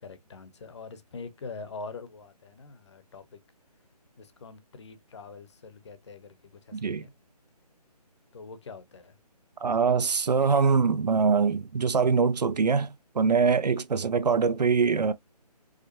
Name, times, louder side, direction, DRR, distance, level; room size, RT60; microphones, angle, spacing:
voice 1, 0.0-3.4 4.2-7.1 8.3-9.2, left 4 dB, 45° left, 0.8 m, -44 dB
voice 2, 6.7-7.0 9.6-15.1, right 5 dB, 75° right, 0.6 m, -23 dB
4.9 x 2.1 x 2.9 m
figure-of-eight pair, 155°, 21 cm